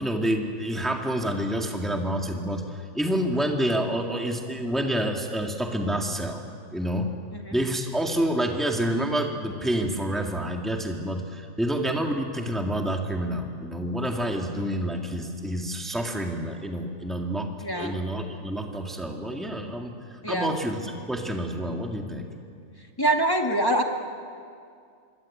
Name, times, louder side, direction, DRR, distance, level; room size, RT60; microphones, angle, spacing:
voice 1, 0.0-6.4 6.7-7.1 7.5-22.3, right 1 dB, ahead, 2 dB, 2.1 m, -28 dB
voice 2, 17.6-18.0 20.2-20.6 23.0-23.8, right 1 dB, 15° left, 2 dB, 2.1 m, -24 dB
26.0 x 23.5 x 8.6 m, 2.3 s
omnidirectional pair, 1.3 m